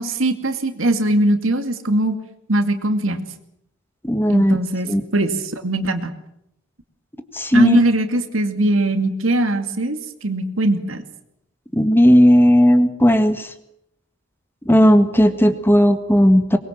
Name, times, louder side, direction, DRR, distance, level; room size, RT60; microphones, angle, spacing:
voice 1, 0.0-2.2 2.5-3.2 4.3-6.1 7.5-11.0, right 1 dB, 85° right, 7 dB, 2.4 m, -20 dB
voice 2, 4.0-4.6 4.9-5.0 7.3-7.9 11.7-13.5 14.6-16.6, equal, 10° left, 9 dB, 1.6 m, -14 dB
23.0 x 21.5 x 7.5 m, 0.77 s
head